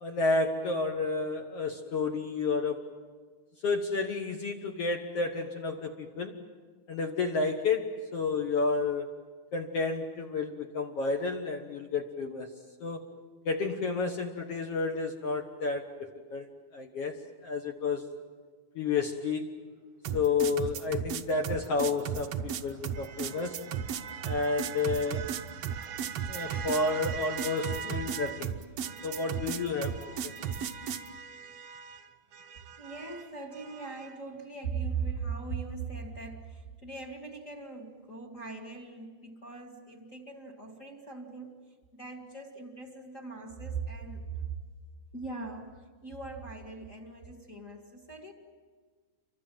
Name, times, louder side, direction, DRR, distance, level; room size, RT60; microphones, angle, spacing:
voice 1, 0.0-2.9 3.6-6.4 6.9-9.1 9.5-12.5 12.8-13.1 13.4-16.5 16.7-18.1 18.7-19.5 20.1-23.6 24.2-25.3 26.3-28.6 29.0-30.0 30.2-30.5, left 4 dB, 60° left, 4 dB, 1.7 m, -31 dB
sound 1, 20.0-31.1, right 8 dB, 80° right, 1.4 m, -34 dB
sound 2, 21.9-28.5 28.8-34.2, right 7 dB, 65° right, 1.6 m, -43 dB
voice 2, 32.8-44.5 45.1-48.3, right 5 dB, 30° left, 2 dB, 1.7 m, -40 dB
29.5 x 24.5 x 7.6 m, 1.5 s
omnidirectional pair, 4.2 m